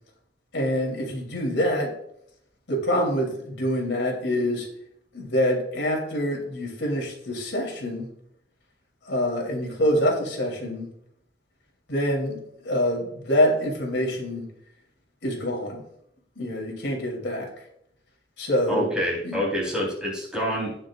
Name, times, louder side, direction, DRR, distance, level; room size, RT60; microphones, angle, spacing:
voice 1, 0.5-1.9 2.7-4.7 5.1-8.1 9.0-10.9 11.9-14.5 15.2-15.8 16.4-17.5 18.4-18.9 19.2-19.4, equal, 80° left, 0 dB, 3.0 m, -25 dB
voice 2, 18.7-20.8, equal, 5° right, -4 dB, 3.7 m, -27 dB
17.5 x 6.4 x 2.4 m, 0.71 s
head